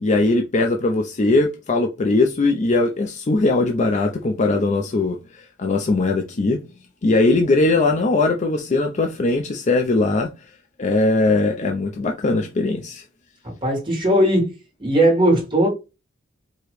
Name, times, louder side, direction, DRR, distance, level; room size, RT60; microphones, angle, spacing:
voice 1, 0.0-6.6 7.0-10.3 10.8-13.1, left 2 dB, 35° left, 0.5 m, -20 dB
voice 2, 13.4-14.5 14.8-15.7, right 1 dB, 25° right, 1.8 m, -18 dB
4.8 x 2.9 x 3.1 m
head